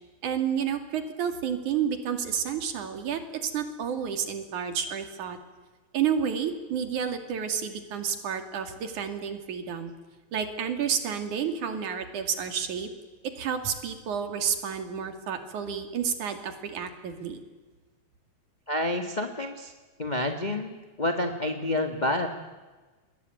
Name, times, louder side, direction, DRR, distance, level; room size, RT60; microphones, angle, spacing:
voice 1, 0.2-5.4 5.9-9.9 10.3-12.9 13.4-17.4, right 7 dB, 85° right, 8 dB, 3.9 m, -30 dB
voice 2, 18.7-19.7 20.0-22.3, left 1 dB, 20° left, 5 dB, 1.3 m, -29 dB
29.0 x 21.5 x 9.3 m, 1.3 s
omnidirectional pair, 3.4 m